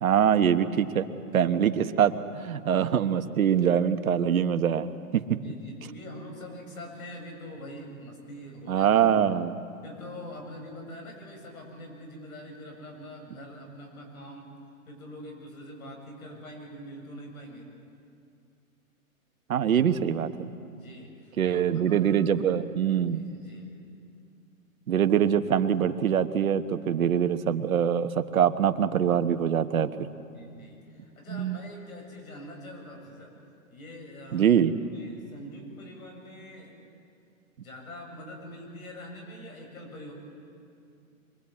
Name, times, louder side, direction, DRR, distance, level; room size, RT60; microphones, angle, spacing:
voice 1, 0.0-1.1 1.3-5.2 8.7-9.5 19.5-20.5 21.4-23.2 24.9-29.9 31.3-31.6 34.3-34.7, right 8 dB, 75° right, 9 dB, 1.3 m, -24 dB
voice 2, 5.3-8.9 9.8-14.5 14.9-17.7 20.8-22.3 23.1-23.7 29.8-33.3 33.7-34.5 34.9-36.8 37.6-40.1, equal, 75° left, 2 dB, 7.6 m, -44 dB
25.0 x 21.0 x 8.6 m, 2.4 s
hypercardioid pair, 160°, 43 cm